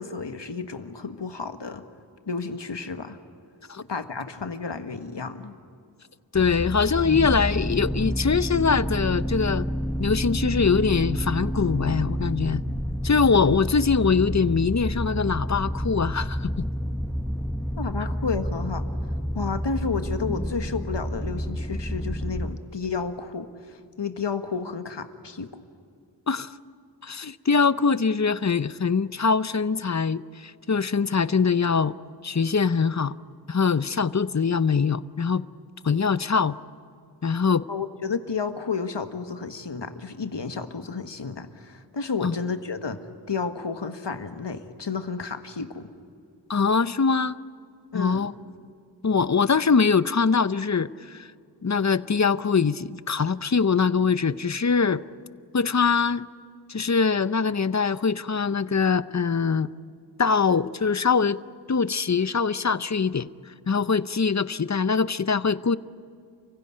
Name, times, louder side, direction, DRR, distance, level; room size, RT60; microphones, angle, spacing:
voice 1, 0.0-1.8 2.3-3.2 3.9-5.6 17.8-18.8 19.4-25.5 37.7-43.0 43.3-45.9 47.9-48.3, left 5 dB, 75° left, 8 dB, 1.6 m, -31 dB
voice 2, 6.3-9.7 10.0-12.6 13.0-16.7 26.3-26.5 27.0-31.9 32.2-33.2 33.5-35.4 35.8-36.5 37.2-37.6 42.2-42.4 46.5-47.4 47.9-48.3 49.0-51.3 51.6-55.0 55.5-56.3 56.7-59.7 60.2-61.4 61.7-63.3 63.7-65.8, left 5 dB, 40° left, 16 dB, 0.7 m, -23 dB
sound 1, 6.3-22.5, equal, 5° left, 1.4 m, -29 dB
29.0 x 16.0 x 9.8 m, 2.4 s
wide cardioid pair, 40°, 43 cm